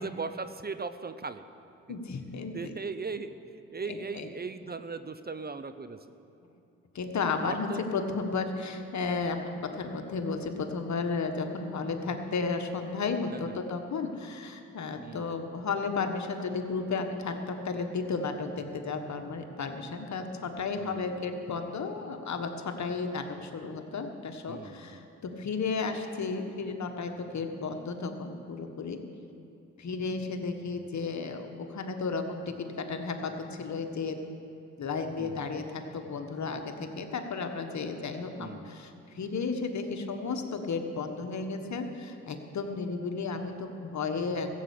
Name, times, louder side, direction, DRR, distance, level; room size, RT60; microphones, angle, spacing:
voice 1, 0.0-1.4 2.5-3.4 3.7-6.0 7.5-7.8 13.3-13.5 15.0-15.3 20.8-21.1 24.5-25.0 35.2-35.6 38.4-38.7, right 4 dB, 30° right, 11 dB, 0.7 m, -38 dB
voice 2, 1.9-2.8 3.8-4.3 6.9-29.0 29.8-34.2 34.8-44.5, left 4 dB, 55° left, 5 dB, 1.4 m, -33 dB
14.5 x 7.6 x 8.5 m, 2.7 s
supercardioid pair, 50°, 33 cm